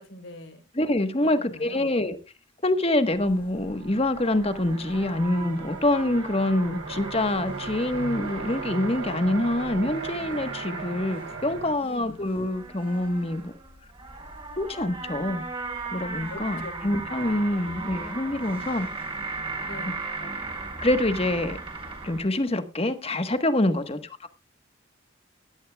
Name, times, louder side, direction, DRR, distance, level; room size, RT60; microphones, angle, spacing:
voice 1, 0.0-0.6 1.2-2.0 11.8-12.2 16.3-16.7 17.1-17.6 19.6-20.1 23.7-24.0, left 1 dB, 75° left, 3.9 m, -44 dB
voice 2, 0.8-2.2 2.6-13.5 14.6-15.4 15.9-18.9 20.2-20.3 20.8-21.6 22.0-24.3, left 1 dB, 30° left, 1.3 m, -26 dB
sound 1, 2.8-2.9 3.3-11.8, right 4 dB, 70° right, 1.0 m, -38 dB
sound 2, 3.2-22.2, right 3 dB, 30° right, 4.6 m, -37 dB
18.0 x 12.5 x 2.3 m
head